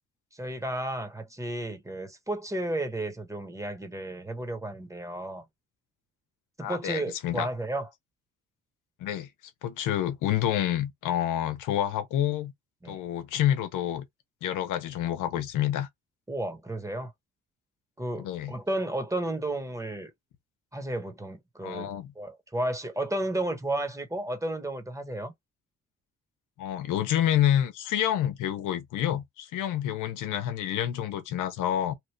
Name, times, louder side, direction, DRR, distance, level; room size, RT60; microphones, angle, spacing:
voice 1, 0.3-5.4 6.6-7.9 12.8-13.0 16.3-17.1 18.0-20.1 20.7-21.9 22.2-25.3, right 1 dB, 10° right, 1.3 m, -33 dB
voice 2, 6.6-7.5 9.0-9.3 9.6-12.5 12.8-14.0 14.4-15.9 18.2-18.6 21.6-22.1 26.6-31.9, left 11 dB, 90° left, 0.8 m, -28 dB
3.1 x 2.5 x 3.1 m
cardioid pair, 90°, 30 cm